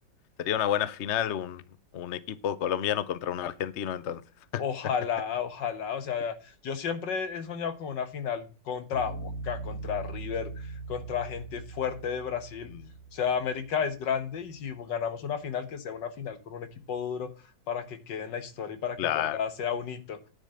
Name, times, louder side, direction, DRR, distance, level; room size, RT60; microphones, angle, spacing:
voice 1, 0.4-1.6 1.9-4.2 4.5-4.6 19.0-19.4, left 10 dB, 55° left, 0.8 m, -30 dB
voice 2, 4.6-12.7 13.1-17.3 17.7-20.2, left 7 dB, 75° left, 1.9 m, -33 dB
sound 1, 8.9-13.8, right 3 dB, 60° right, 3.7 m, -40 dB
10.0 x 5.1 x 7.6 m
omnidirectional pair, 2.0 m